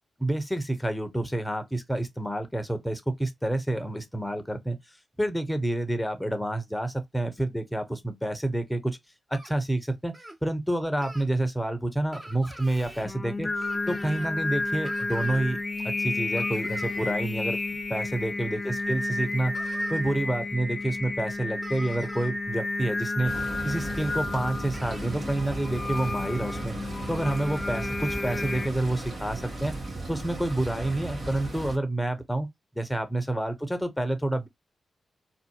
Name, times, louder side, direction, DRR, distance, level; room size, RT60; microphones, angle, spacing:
voice 1, 0.2-4.8 5.2-9.0 9.3-10.1 10.4-13.5 13.9-15.6 15.8-17.6 17.9-19.5 19.9-23.3 23.6-26.7 27.1-29.7 30.1-32.5 32.7-34.5, right 1 dB, 5° left, 1.0 m, -28 dB
sound 1, 9.3-9.5 10.1-10.4 11.0-11.3 12.1-13.1 13.6-14.3 14.8-15.4 16.4-17.2 18.8-18.9 19.5-20.0 20.8-20.9 21.2-21.3 21.6-22.3 24.0-24.1 24.7-25.1 25.5-25.6, right 1 dB, 25° right, 1.3 m, -44 dB
Singing, 12.7-28.7, left 2 dB, 30° left, 0.5 m, -31 dB
sound 2, 23.2-31.8, right 2 dB, 55° right, 1.9 m, -36 dB
4.1 x 2.4 x 2.3 m
supercardioid pair, 40°, 0 cm